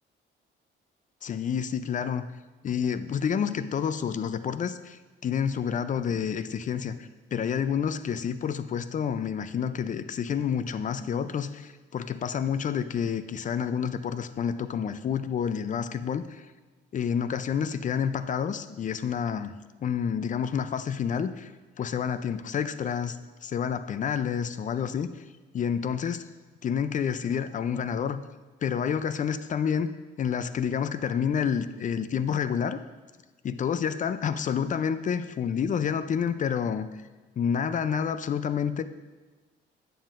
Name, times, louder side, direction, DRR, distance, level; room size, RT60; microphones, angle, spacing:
voice 1, 1.2-2.2 2.6-16.5 16.9-19.5 19.8-21.5 21.8-25.1 25.5-26.3 26.6-28.2 28.6-29.9 30.2-32.8 33.4-36.9 37.4-38.8, left 7 dB, 40° left, 12 dB, 0.4 m, -29 dB
9.1 x 7.3 x 2.5 m, 1.3 s
cardioid pair, 90°, 20 cm